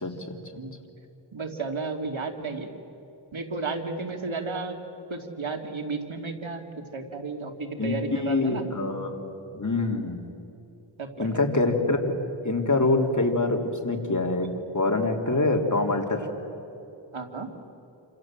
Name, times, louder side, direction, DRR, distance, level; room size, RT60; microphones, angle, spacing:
voice 1, 0.0-0.3 7.8-9.2 9.5-10.3 11.2-12.1 12.4-14.5 14.7-16.3, left 2 dB, 35° left, 2 dB, 3.2 m, -25 dB
voice 2, 1.3-2.7 3.3-4.8 5.1-6.6 6.9-8.6 11.0-11.4 17.1-17.5, right 3 dB, 75° right, 3 dB, 2.8 m, -33 dB
28.0 x 26.0 x 7.6 m, 2.8 s
wide cardioid pair, 60°, 48 cm